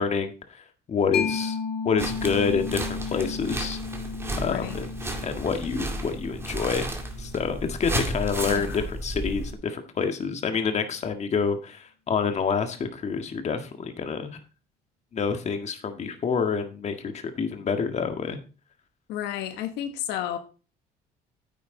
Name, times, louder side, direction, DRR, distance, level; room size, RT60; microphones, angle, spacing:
voice 1, 0.0-1.6 1.8-3.8 4.4-4.9 5.2-6.9 7.2-14.4 15.1-18.4, left 5 dB, 40° left, 7 dB, 1.8 m, -27 dB
Mallet percussion, 1.1-8.4, left 5 dB, 65° left, 2.1 m, -35 dB
sound 1, 2.0-9.5, right 1 dB, 15° right, 2.2 m, -33 dB
voice 2, 4.4-4.8 8.4-8.9 19.1-20.4, left 11 dB, 90° left, 8 dB, 1.2 m, -32 dB
9.7 x 8.7 x 3.9 m, 0.35 s
cardioid pair, 110°, 17 cm